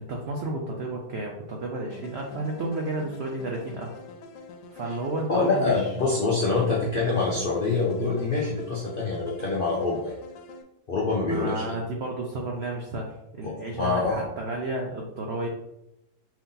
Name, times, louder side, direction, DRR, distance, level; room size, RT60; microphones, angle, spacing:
voice 1, 0.0-3.9 4.7-5.9 11.3-15.5, right 2 dB, 80° right, 0 dB, 0.5 m, -32 dB
sound 1, 1.9-10.6, left 3 dB, 85° left, 1.2 m, -45 dB
voice 2, 5.3-10.2 10.9-11.6 13.4-14.2, left 3 dB, 70° left, -4 dB, 0.5 m, -25 dB
4.6 x 2.7 x 3.8 m, 0.87 s
omnidirectional pair, 1.9 m